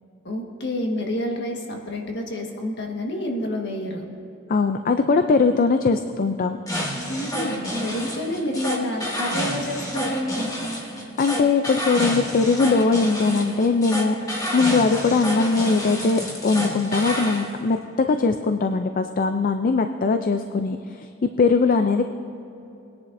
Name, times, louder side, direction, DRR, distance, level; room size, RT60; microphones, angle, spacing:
voice 1, 0.2-4.0 7.1-10.5, left 1 dB, 60° left, 1 dB, 1.6 m, -29 dB
voice 2, 4.5-6.6 11.2-14.2 14.5-22.1, left 4 dB, 45° left, 7 dB, 0.4 m, -21 dB
sound 1, 6.7-17.5, equal, 15° left, 1.6 m, -29 dB
21.0 x 10.5 x 2.6 m, 2.8 s
head